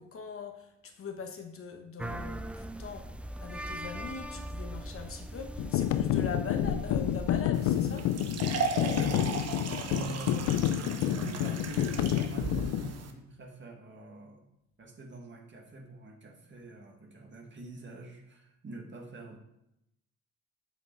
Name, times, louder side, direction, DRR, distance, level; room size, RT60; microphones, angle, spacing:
voice 1, 0.0-3.1 3.4-8.1, left 5 dB, 45° left, 5 dB, 1.1 m, -41 dB
sound 1, 2.0-7.4, right 1 dB, 5° right, 0.3 m, -39 dB
sound 2, 5.6-12.9, left 12 dB, 85° left, 0.5 m, -29 dB
sound 3, 7.5-13.1, right 4 dB, 55° right, 1.1 m, -36 dB
voice 2, 8.8-9.4 9.8-10.6 11.0-14.5 14.8-19.4, right 3 dB, 40° right, 1 dB, 1.8 m, -44 dB
8.1 x 5.3 x 4.6 m, 0.82 s
cardioid pair, 90°, 30 cm